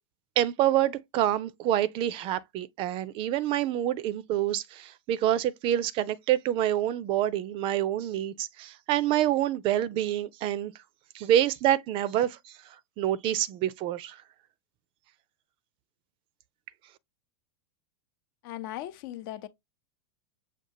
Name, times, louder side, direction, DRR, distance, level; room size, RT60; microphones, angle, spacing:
voice 1, 0.4-10.7 11.1-12.5 13.0-14.2, right 12 dB, 40° right, 0.5 m, -27 dB
voice 2, 18.4-19.5, left 13 dB, 50° left, 0.7 m, -38 dB
6.7 x 2.3 x 2.8 m
hypercardioid pair, 95°, 14 cm